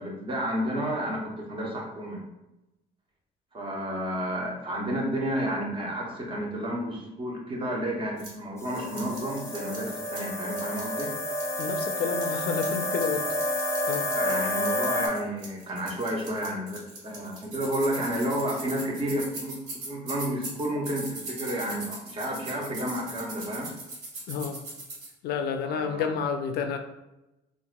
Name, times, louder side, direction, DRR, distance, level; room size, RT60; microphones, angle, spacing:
voice 1, 0.0-2.2 3.5-11.1 14.1-19.6 19.9-23.7 25.6-26.1, right 1 dB, 30° right, -1 dB, 0.8 m, -31 dB
sound 1, 8.2-8.3 8.7-10.2 10.5-13.1 13.3-25.1, right 2 dB, 80° right, 1.5 m, -40 dB
sound 2, 8.6-15.1, left 1 dB, 15° left, 0.6 m, -30 dB
voice 2, 11.6-13.3 13.9-14.1 24.3-24.6 25.2-26.8, left 6 dB, 70° left, 6 dB, 0.4 m, -30 dB
4.0 x 2.5 x 2.2 m, 0.94 s
cardioid pair, 110°, 17 cm